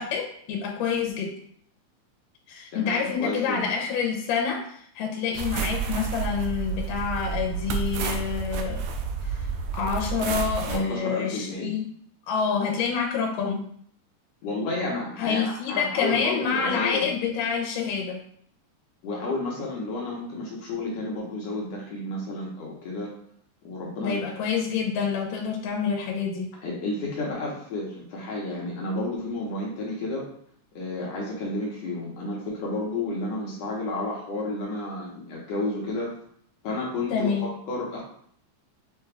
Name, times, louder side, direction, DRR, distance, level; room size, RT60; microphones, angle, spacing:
voice 1, 0.0-1.3 2.5-8.8 9.3-9.4 9.7-11.9 12.3-13.7 15.2-18.2 24.0-26.5 37.1-37.5, left 6 dB, 85° left, 1 dB, 2.2 m, -27 dB
voice 2, 2.7-3.7 10.7-11.7 14.4-17.1 19.0-23.1 23.6-24.2 26.6-30.3 30.7-36.1 36.6-38.0, left 2 dB, 70° left, -3 dB, 1.7 m, -31 dB
sound 1, 5.3-10.8, right 6 dB, 85° right, 1.6 m, -30 dB
6.6 x 2.3 x 3.3 m, 0.63 s
omnidirectional pair, 3.8 m